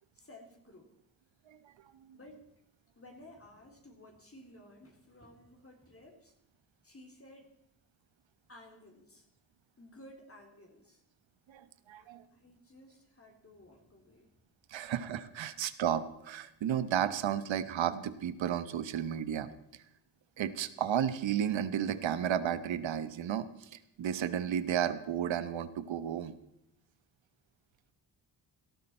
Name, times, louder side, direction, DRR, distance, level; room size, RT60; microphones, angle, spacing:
voice 1, 0.1-0.9 2.1-2.5 3.0-6.3 6.8-7.5 8.5-9.3 9.8-11.0 12.0-14.3 15.5-15.6, left 1 dB, 30° left, 2 dB, 3.6 m, -55 dB
voice 2, 11.5-12.2 14.7-19.5 20.4-26.3, right 9 dB, 75° right, 13 dB, 1.2 m, -33 dB
18.0 x 13.0 x 4.4 m, 0.78 s
cardioid pair, 80°, 46 cm